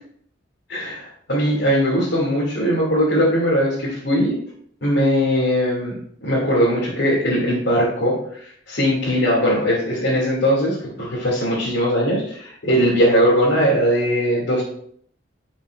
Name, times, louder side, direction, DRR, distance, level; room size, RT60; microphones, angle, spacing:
voice 1, 0.7-4.3 4.8-5.9 6.2-14.6, equal, 75° left, -7 dB, 2.8 m, -20 dB
11.0 x 6.2 x 2.6 m, 0.63 s
head